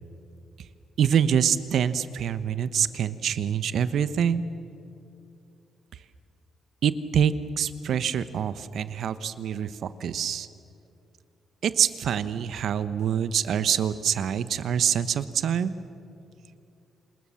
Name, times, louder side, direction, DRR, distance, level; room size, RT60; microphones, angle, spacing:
voice 1, 1.0-4.4 6.8-10.5 11.6-15.7, right 8 dB, 70° right, 13 dB, 1.0 m, -25 dB
27.0 x 19.5 x 7.1 m, 2.7 s
cardioid pair, 75°, 0 cm